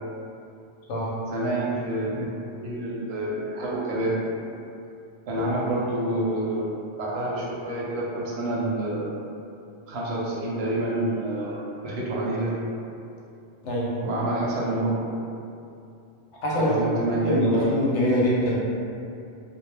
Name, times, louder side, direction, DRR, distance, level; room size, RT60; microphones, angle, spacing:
voice 1, 1.3-2.2 2.5-4.3 5.3-6.6 7.0-9.1 9.9-12.7 14.0-15.0 16.6-17.6, right 1 dB, 70° right, -5 dB, 0.8 m, -27 dB
voice 2, 13.6-14.1 16.4-16.7 17.2-18.6, left 1 dB, 80° left, -6 dB, 1.0 m, -24 dB
2.2 x 2.1 x 3.2 m, 2.6 s
omnidirectional pair, 1.2 m